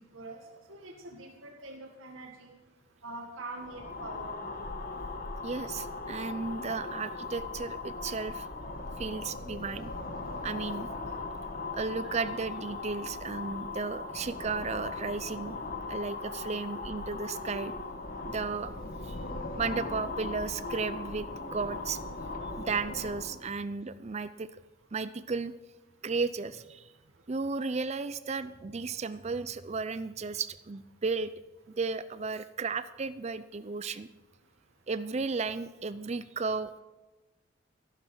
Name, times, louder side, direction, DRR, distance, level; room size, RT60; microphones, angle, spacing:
voice 1, 0.7-2.5 3.0-4.5 12.0-12.1, right 2 dB, 80° right, 1 dB, 1.9 m, -44 dB
sound 1, 3.6-23.4, left 3 dB, 45° left, 1.3 m, -39 dB
voice 2, 5.4-8.5 9.0-9.9 10.4-10.9 11.7-15.6 15.9-17.7 18.2-18.7 19.0-19.2 19.6-21.3 21.5-22.0 22.6-24.5 24.9-25.5 26.0-26.9 27.3-31.3 31.7-34.1 34.9-36.8, right 4 dB, 35° right, 14 dB, 0.5 m, -34 dB
14.5 x 11.5 x 6.1 m, 1.1 s
head